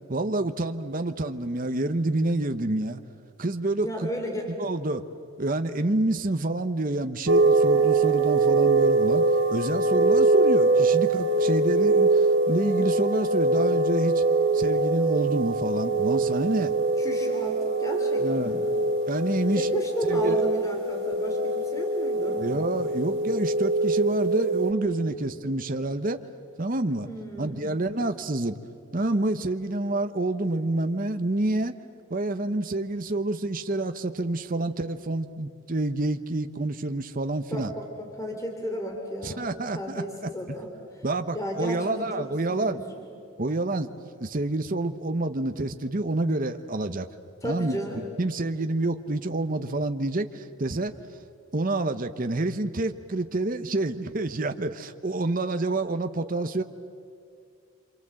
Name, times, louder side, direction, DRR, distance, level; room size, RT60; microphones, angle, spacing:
voice 1, 0.1-3.0 3.4-4.1 4.6-5.0 5.4-9.2 9.5-14.2 14.5-16.7 18.2-18.6 19.1-19.7 20.1-20.4 22.4-26.2 26.6-27.1 27.4-28.6 28.9-31.8 32.1-37.7 39.2-40.0 41.0-42.8 43.4-43.9 44.2-47.1 47.4-47.8 48.2-50.9 51.5-56.6, right 2 dB, 40° right, 8 dB, 0.9 m, -28 dB
voice 2, 3.8-4.5 17.0-18.8 19.6-22.4 25.0-25.2 27.0-27.7 37.5-39.4 39.7-40.7 41.3-43.0 47.4-48.0, equal, 15° left, 1 dB, 3.2 m, -34 dB
sound 1, 7.3-24.7, right 2 dB, 70° right, 3.5 m, -23 dB
27.0 x 26.5 x 7.7 m, 2.4 s
head